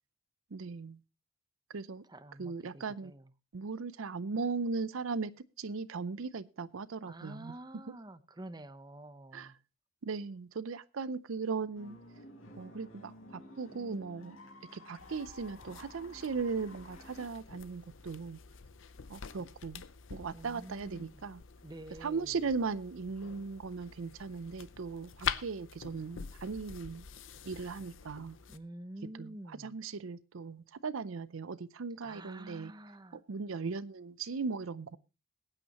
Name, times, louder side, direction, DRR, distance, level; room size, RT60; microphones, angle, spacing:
voice 1, 0.5-1.0 1.7-2.0 2.4-3.1 3.5-5.3 5.6-7.8 9.3-9.5 10.0-12.0 12.6-14.4 14.7-18.4 19.1-19.8 20.1-21.4 22.0-27.0 27.5-28.4 29.2-32.7 33.1-35.0, right 4 dB, 70° right, 16 dB, 0.5 m, -38 dB
voice 2, 2.1-3.3 7.0-9.5 20.3-21.2 21.6-22.4 28.5-29.8 32.0-33.2, right 1 dB, 20° right, 12 dB, 0.7 m, -48 dB
sound 1, 11.7-17.3, left 1 dB, 80° left, 5.1 m, -53 dB
sound 2, 15.0-28.6, left 7 dB, 65° left, 0.7 m, -45 dB
21.0 x 9.0 x 2.9 m, 0.28 s
head